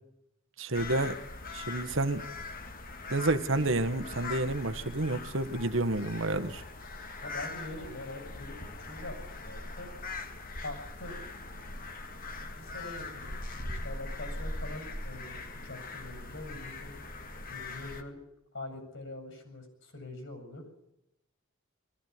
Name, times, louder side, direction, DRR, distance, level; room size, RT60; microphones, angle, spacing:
voice 1, 0.6-1.2 1.5-2.3 3.1-6.6, right 2 dB, 65° right, 9 dB, 1.5 m, -29 dB
sound 1, 0.7-18.0, left 2 dB, 45° left, 2.2 m, -41 dB
voice 2, 7.2-9.9 10.6-11.1 12.6-15.4 15.6-17.0 17.5-18.2 18.5-20.6, left 2 dB, 65° left, 6 dB, 7.3 m, -43 dB
22.0 x 15.0 x 9.6 m, 0.83 s
head